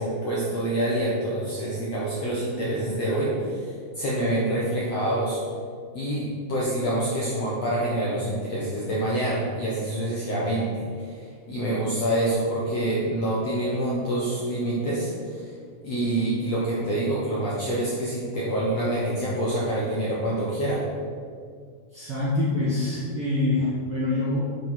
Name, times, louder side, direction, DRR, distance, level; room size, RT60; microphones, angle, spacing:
voice 1, 0.0-5.4 5.9-15.5 15.8-20.8, right 1 dB, 65° left, -6 dB, 1.6 m, -26 dB
voice 2, 21.9-24.6, left 2 dB, 55° right, -8 dB, 1.6 m, -25 dB
7.9 x 4.9 x 6.1 m, 2.1 s
omnidirectional pair, 4.4 m